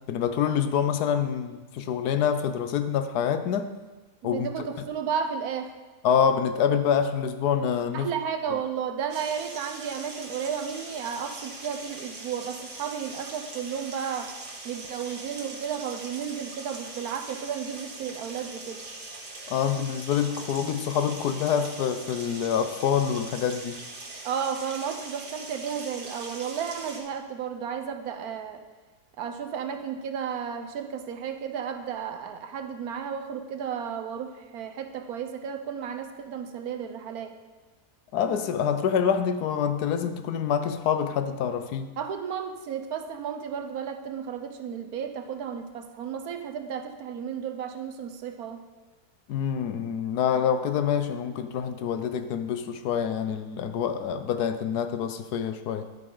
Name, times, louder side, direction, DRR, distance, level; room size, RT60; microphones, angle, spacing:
voice 1, 0.1-3.7 4.2-4.7 6.0-8.1 19.5-23.8 38.1-41.9 49.3-55.9, left 8 dB, 75° left, 9 dB, 1.2 m, -26 dB
voice 2, 4.3-5.7 7.9-14.3 14.6-18.9 24.2-28.6 29.2-37.3 42.0-48.6, right 7 dB, 70° right, 7 dB, 1.2 m, -33 dB
sound 1, 9.1-27.0, right 2 dB, 85° right, 2.2 m, -41 dB
11.0 x 9.1 x 3.9 m, 1.2 s
omnidirectional pair, 1.7 m